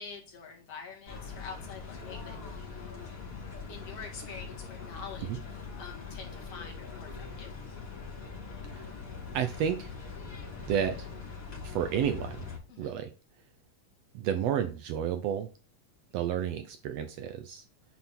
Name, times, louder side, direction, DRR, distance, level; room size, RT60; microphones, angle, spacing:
voice 1, 0.0-3.1 3.7-7.5 12.7-12.9, left 5 dB, 60° left, 0 dB, 2.9 m, -46 dB
sound 1, 1.1-12.6, left 5 dB, 30° left, 2.7 m, -42 dB
voice 2, 9.3-9.9 10.6-11.1 11.6-12.5 12.8-13.1 14.1-15.5 16.1-17.6, right 9 dB, 70° right, 8 dB, 1.7 m, -31 dB
9.4 x 4.2 x 4.3 m, 0.34 s
omnidirectional pair, 3.3 m